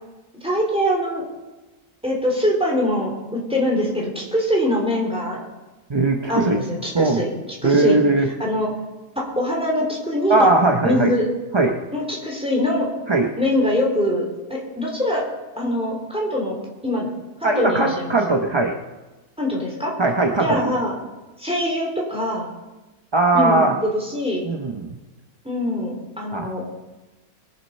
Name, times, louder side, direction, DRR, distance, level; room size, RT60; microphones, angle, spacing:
voice 1, 0.4-1.2 2.0-5.4 6.3-7.3 7.6-8.0 8.4-8.7 9.1-10.5 10.8-11.2 11.9-12.9 13.4-15.2 15.6-16.6 16.8-17.1 17.4-18.2 19.4-19.9 20.4-20.9 21.4-22.5 23.3-24.4 25.4-26.6, left 1 dB, 5° right, -2 dB, 3.4 m, -23 dB
voice 2, 5.9-6.6 6.9-7.2 7.6-8.3 10.3-11.1 11.5-11.8 13.1-13.3 17.4-18.8 20.0-20.7 23.1-23.7 24.4-25.0 26.3-26.5, right 2 dB, 30° right, 3 dB, 0.5 m, -19 dB
22.0 x 7.3 x 5.4 m, 1.1 s
omnidirectional pair, 1.7 m